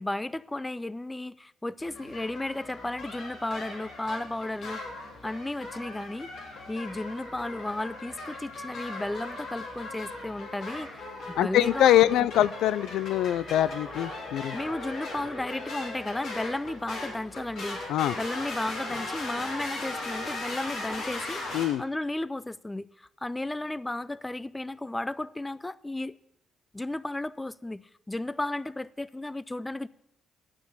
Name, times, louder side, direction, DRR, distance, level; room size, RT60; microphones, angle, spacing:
voice 1, 0.0-4.8 5.2-6.3 6.7-12.1 14.5-21.5 21.8-26.2 26.7-29.9, left 2 dB, 15° left, 0.4 m, -34 dB
sound 1, 1.8-21.7, left 2 dB, 70° left, 3.5 m, -38 dB
voice 2, 11.4-14.6 17.9-18.1 21.5-21.8, left 12 dB, 85° left, 0.4 m, -23 dB
11.5 x 8.4 x 8.4 m
cardioid pair, 90°, 0 cm